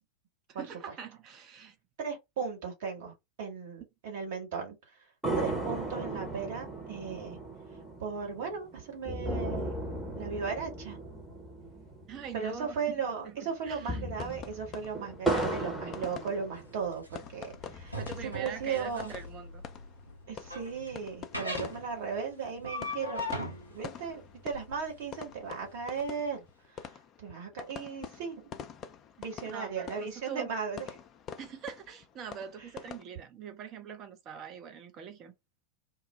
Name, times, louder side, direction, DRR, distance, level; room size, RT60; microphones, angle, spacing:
voice 1, 0.5-1.8 12.1-13.0 13.2-14.0 18.0-19.6 29.4-30.5 31.4-35.3, right 8 dB, 35° right, 0.6 m, -43 dB
voice 2, 2.0-4.8 5.4-7.4 8.0-9.7 10.1-11.0 12.3-19.1 20.3-23.3 23.7-26.4 26.7-28.5 29.2-30.9, right 6 dB, 50° right, 1.2 m, -36 dB
sound 1, 5.2-12.8 13.1-13.2 13.6-17.0 17.5-18.5, right 2 dB, 5° right, 0.9 m, -36 dB
sound 2, 14.2-33.0, left 7 dB, 30° left, 0.4 m, -47 dB
sound 3, 16.5-26.1, left 1 dB, 90° right, 0.6 m, -41 dB
2.3 x 2.0 x 3.0 m
figure-of-eight pair, 90°, 0 cm